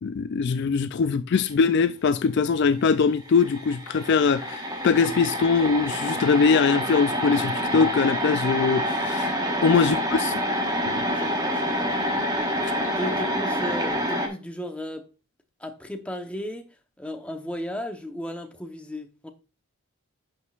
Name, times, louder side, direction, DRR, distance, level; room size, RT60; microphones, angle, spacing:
voice 1, 0.0-9.3 9.6-10.0 10.8-11.0, left 5 dB, 50° left, 0.3 m, -22 dB
sound 1, 3.0-3.1 3.3-14.3, equal, 20° right, 1.3 m, -27 dB
voice 2, 11.2-12.2 13.0-15.1 15.6-19.3, left 1 dB, 5° left, 0.8 m, -35 dB
11.0 x 6.3 x 2.4 m
head